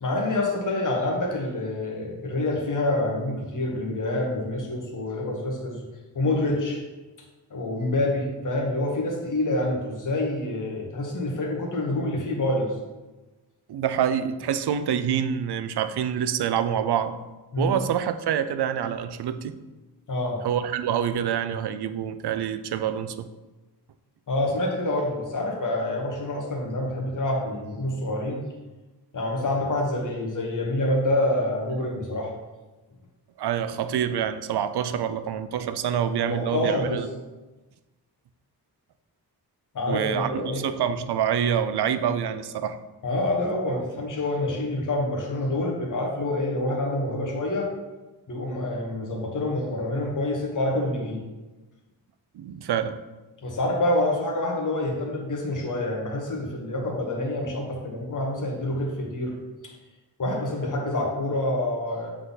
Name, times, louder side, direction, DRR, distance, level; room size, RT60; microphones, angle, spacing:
voice 1, 0.0-5.8 6.1-6.8 7.5-12.7 17.5-17.7 20.1-20.4 24.3-28.5 29.1-32.3 36.3-37.0 39.7-40.7 43.0-47.7 48.3-51.2 53.4-59.4 59.6-59.7 60.2-62.1, left 1 dB, 50° left, -1 dB, 1.3 m, -27 dB
voice 2, 13.7-17.2 17.6-19.5 20.4-23.3 33.4-37.1 39.9-42.8 52.3-53.0, right 9 dB, 75° right, 11 dB, 0.5 m, -26 dB
7.7 x 3.7 x 4.0 m, 1.2 s
wide cardioid pair, 175°, 40 cm